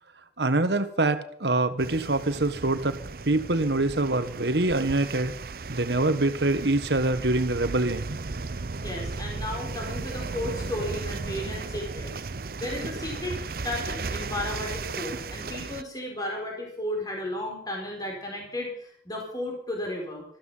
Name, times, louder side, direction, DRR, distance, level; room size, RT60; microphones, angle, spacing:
voice 1, 0.4-3.0 3.2-5.3 5.7-8.2, right 2 dB, 75° right, 10 dB, 1.6 m, -25 dB
sound 1, 1.8-15.8, right 3 dB, 55° right, 0.7 m, -35 dB
voice 2, 8.8-12.1 12.6-13.4 13.6-20.2, left 1 dB, 20° left, 0 dB, 4.6 m, -34 dB
14.5 x 13.0 x 5.7 m, 0.63 s
head